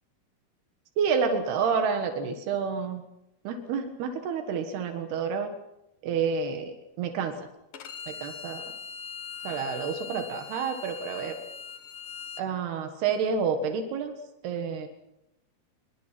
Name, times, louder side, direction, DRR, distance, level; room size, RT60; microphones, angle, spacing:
voice 1, 1.0-3.0 3.5-5.5 6.0-7.4 8.1-8.6 9.5-11.4 12.4-14.1 14.4-14.9, right 6 dB, 85° right, 6 dB, 3.6 m, -29 dB
Bowed string instrument, 7.7-12.4, left 6 dB, 65° left, 1.3 m, -41 dB
26.0 x 22.5 x 6.0 m, 0.88 s
omnidirectional pair, 4.5 m